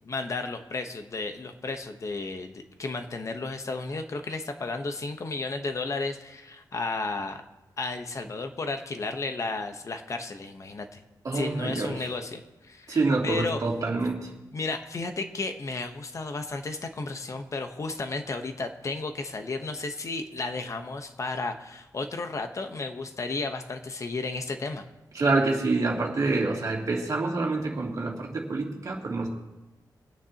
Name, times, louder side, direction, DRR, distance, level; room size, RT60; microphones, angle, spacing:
voice 1, 0.0-7.4 7.8-11.0 11.3-13.0 13.2-13.6 14.5-24.8, left 3 dB, 45° left, 6 dB, 1.0 m, -33 dB
voice 2, 11.2-12.1 12.9-14.3 25.1-29.3, right 3 dB, 50° right, -2 dB, 2.8 m, -27 dB
25.0 x 9.5 x 2.9 m, 1.0 s
wide cardioid pair, 120°, 7 cm